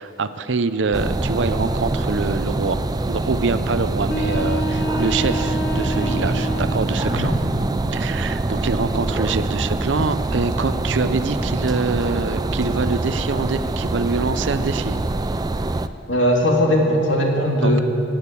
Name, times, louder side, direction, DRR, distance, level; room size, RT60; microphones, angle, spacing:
voice 1, 0.0-7.3 7.9-15.0 17.6-17.8, right 4 dB, 70° right, 13 dB, 0.6 m, -25 dB
sound 1, 0.9-15.9, right 2 dB, 20° right, 0.4 m, -24 dB
sound 2, 4.1-7.0, equal, 60° left, 1.3 m, -27 dB
voice 2, 7.0-7.4 16.1-17.8, equal, 85° left, 0 dB, 2.3 m, -19 dB
18.0 x 8.7 x 8.5 m, 2.8 s
head